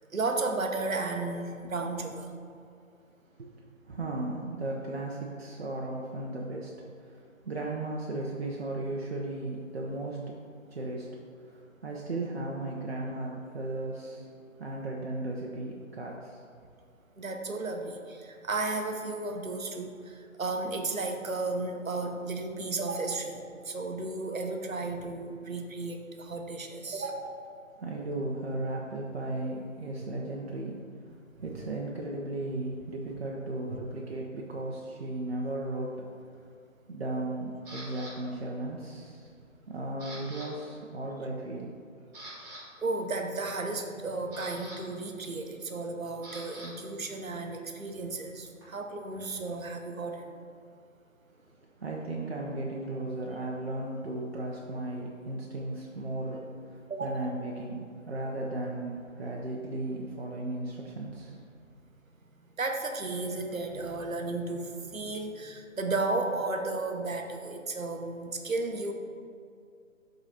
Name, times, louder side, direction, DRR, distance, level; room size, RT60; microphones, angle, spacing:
voice 1, 0.1-2.4 17.2-19.9 20.4-23.4 23.7-27.4 31.1-31.2 42.8-50.3 56.9-57.3 62.6-68.9, right 3 dB, 90° right, 4 dB, 1.0 m, -33 dB
voice 2, 3.9-6.7 7.0-10.3 10.7-14.3 14.6-16.4 27.8-36.4 36.9-39.3 39.7-41.7 51.8-61.4, right 2 dB, 50° right, -2 dB, 0.8 m, -36 dB
Camera, 37.6-38.1 38.7-39.1 39.4-40.5 40.7-40.9 41.5-41.6 42.0-42.6 43.8-46.7 47.0-49.6, right 1 dB, 10° right, 1.3 m, -47 dB
11.5 x 3.9 x 2.8 m, 2.4 s
figure-of-eight pair, 155°, 40 cm